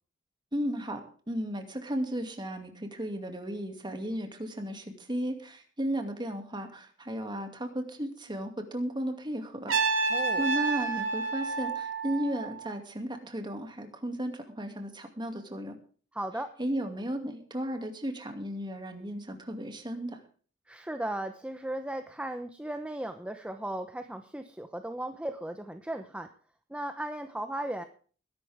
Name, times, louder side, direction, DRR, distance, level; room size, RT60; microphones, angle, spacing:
voice 1, 0.5-9.7 10.4-15.8 16.6-20.2, equal, 20° right, 5 dB, 2.5 m, -34 dB
Trumpet, 9.7-12.7, right 4 dB, 70° right, 3.6 m, -29 dB
voice 2, 10.1-10.4 16.1-16.5 20.7-26.3 26.7-27.8, right 1 dB, 5° right, 7 dB, 0.9 m, -36 dB
21.0 x 11.5 x 3.6 m, 0.41 s
head